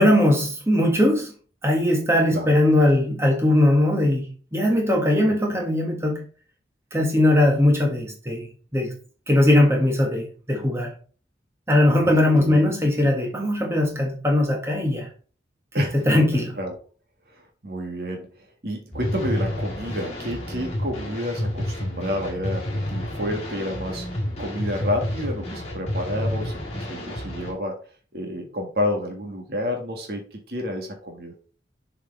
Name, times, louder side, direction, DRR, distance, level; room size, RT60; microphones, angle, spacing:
voice 1, 0.0-1.3 1.6-6.3 6.9-8.9 9.3-10.9 11.7-15.1 15.8-16.5, left 1 dB, 15° right, 1.5 m, -20 dB
voice 2, 12.0-12.6 15.7-16.2 16.6-16.8 17.3-24.1 24.4-27.8 28.1-31.3, left 1 dB, 60° right, 1.7 m, -30 dB
sound 1, 18.9-27.5, left 1 dB, 35° left, 2.1 m, -30 dB
7.0 x 4.9 x 3.3 m
head